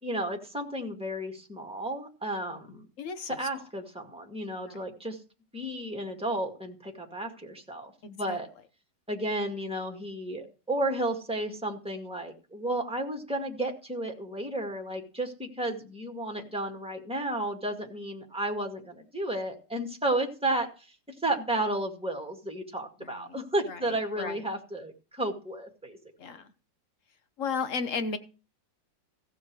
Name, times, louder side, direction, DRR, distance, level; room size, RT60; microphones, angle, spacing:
voice 1, 0.0-2.9 3.3-5.2 5.5-8.5 9.1-26.0, right 1 dB, 5° right, 3 dB, 1.7 m, -33 dB
voice 2, 2.5-3.4 4.6-4.8 8.0-8.4 23.0-23.4 23.6-24.4 26.2-26.5 27.4-28.2, left 5 dB, 50° left, 10 dB, 1.2 m, -35 dB
15.5 x 7.2 x 4.7 m, 0.35 s
omnidirectional pair, 2.1 m